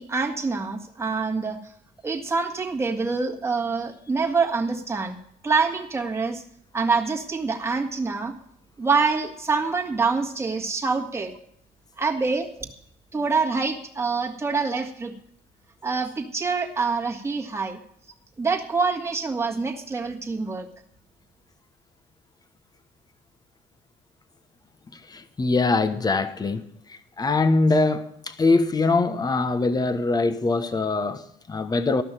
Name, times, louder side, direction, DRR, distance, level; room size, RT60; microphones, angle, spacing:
voice 1, 0.0-1.6 2.0-5.2 5.4-6.4 6.7-8.3 8.8-11.3 12.0-12.5 13.1-15.1 15.8-17.8 18.4-20.7, right 4 dB, 15° right, 1.9 m, -25 dB
voice 2, 24.9-32.0, left 3 dB, 25° left, 1.1 m, -23 dB
13.5 x 6.1 x 8.9 m
cardioid pair, 110°, 17 cm